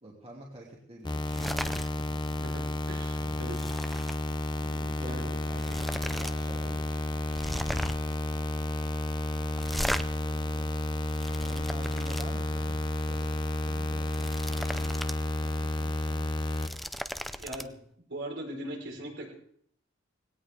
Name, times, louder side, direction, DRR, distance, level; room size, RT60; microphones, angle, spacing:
voice 1, 0.0-2.1 3.1-3.4 4.6-7.5 11.3-12.8 13.1-13.3 13.6-15.0 15.4-16.5, right 1 dB, 30° right, -3 dB, 2.8 m, -48 dB
sound 1, 1.0-16.7, left 1 dB, 25° left, 0.9 m, -31 dB
sound 2, 1.3-1.9 2.2-2.5 2.8-4.2 5.1-5.2 5.6-6.3 6.6-6.7 7.3-8.1 9.6-10.0 10.8-12.3 13.9-15.2 15.5-15.6 16.3-17.6, equal, ahead, 0.5 m, -36 dB
voice 2, 2.4-3.6 5.0-5.2 17.4-17.8 18.1-19.3, right 1 dB, 60° right, 0 dB, 4.9 m, -40 dB
19.5 x 17.5 x 3.7 m, 0.64 s
head